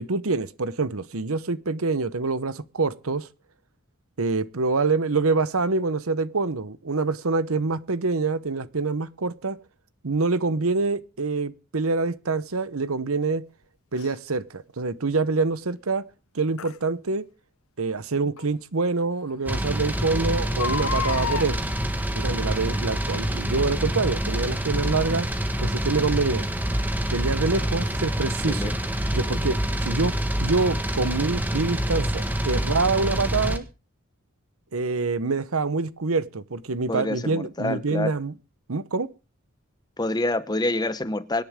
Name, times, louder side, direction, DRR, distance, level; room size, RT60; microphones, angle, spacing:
voice 1, 0.0-3.3 4.2-9.6 10.0-13.4 13.9-16.0 16.3-17.2 17.8-21.6 22.1-25.3 25.6-26.5 27.1-28.7 29.1-33.6 34.7-38.3 38.7-39.1, right 3 dB, 80° right, 1.0 m, -26 dB
Crying sobbing, 14.0-14.1 16.6-16.8 18.4-18.5 19.0-19.1 19.3-19.4 20.4-21.5 22.5-22.8 23.4-23.5, left 6 dB, 80° left, 0.7 m, -30 dB
sound 1, 19.5-33.6, right 1 dB, 10° right, 1.5 m, -26 dB
voice 2, 28.4-28.7 36.9-38.1 40.0-41.4, left 2 dB, 20° left, 0.9 m, -27 dB
24.5 x 10.5 x 3.7 m
head